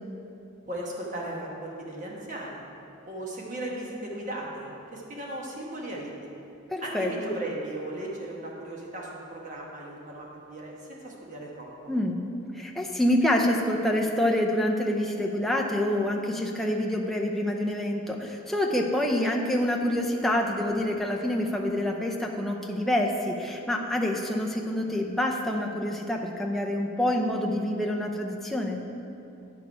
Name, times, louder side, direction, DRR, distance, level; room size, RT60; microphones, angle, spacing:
voice 1, 0.7-2.6 3.1-6.1 6.8-11.7, right 1 dB, 40° right, -3 dB, 1.2 m, -36 dB
voice 2, 6.7-7.1 11.9-12.2 12.5-28.8, left 1 dB, ahead, -1 dB, 0.6 m, -27 dB
9.4 x 6.1 x 4.7 m, 2.9 s
head